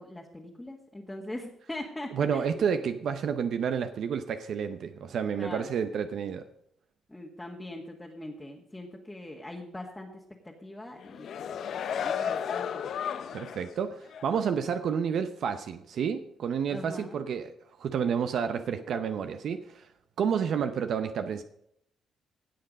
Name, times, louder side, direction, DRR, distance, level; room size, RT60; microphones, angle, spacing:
voice 1, 0.0-2.6 5.4-5.7 7.1-11.6 11.9-12.9 16.7-17.2, left 1 dB, 10° left, -1 dB, 1.6 m, -42 dB
voice 2, 2.1-6.5 13.3-17.5 17.8-19.9 20.2-21.4, right 7 dB, 65° right, 9 dB, 0.7 m, -30 dB
sound 1, 11.0-13.7 14.1-14.3, left 8 dB, 65° left, 0.7 m, -33 dB
17.0 x 6.7 x 5.3 m, 0.74 s
cardioid pair, 90°, 0 cm